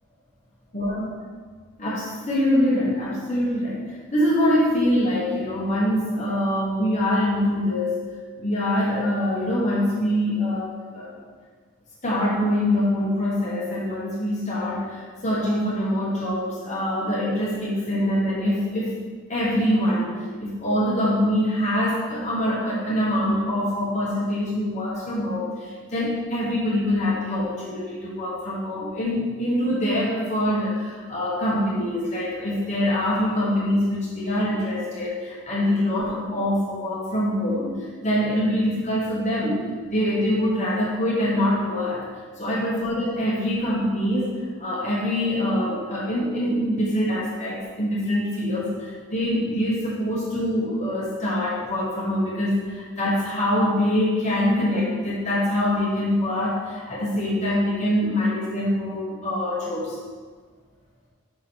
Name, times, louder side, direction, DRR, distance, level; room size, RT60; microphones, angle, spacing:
voice 1, 0.7-1.0 1.8-8.0 8.4-11.2 12.0-19.0 19.3-42.1 42.4-60.0, left 1 dB, 35° left, -6 dB, 1.4 m, -24 dB
5.9 x 4.9 x 6.1 m, 1.6 s
head